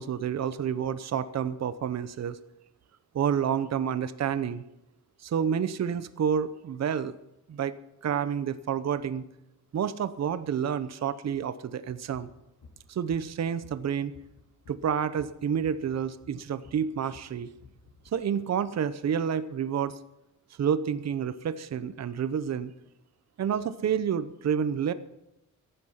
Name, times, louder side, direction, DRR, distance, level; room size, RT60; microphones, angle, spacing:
voice 1, 0.0-2.4 3.1-4.6 5.2-7.2 7.5-7.7 8.0-9.2 9.7-12.3 12.9-14.1 14.7-17.5 18.1-20.0 20.6-22.7 23.4-24.9, right 8 dB, 55° right, 13 dB, 0.8 m, -29 dB
sound 1, 11.9-18.1, left 4 dB, 85° left, 3.5 m, -53 dB
15.0 x 11.5 x 5.7 m, 0.89 s
wide cardioid pair, 130°, 31 cm